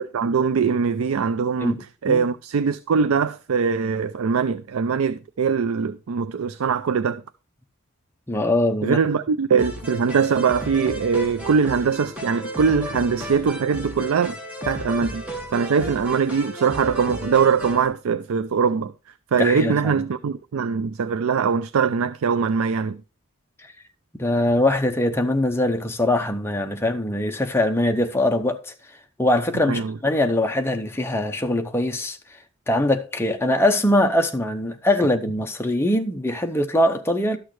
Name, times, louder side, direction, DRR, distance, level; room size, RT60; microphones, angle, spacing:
voice 1, 0.0-7.2 8.8-14.4 14.7-15.2 15.5-18.9 19.3-23.0 29.7-30.0, right 6 dB, 80° right, 0.4 m, -22 dB
voice 2, 1.6-2.3 8.3-9.0 19.4-20.0 24.2-28.7 29.2-32.2 32.7-37.4, left 1 dB, 10° left, 0.7 m, -22 dB
sound 1, 9.6-17.9, equal, 5° right, 1.6 m, -34 dB
12.5 x 6.3 x 3.1 m
head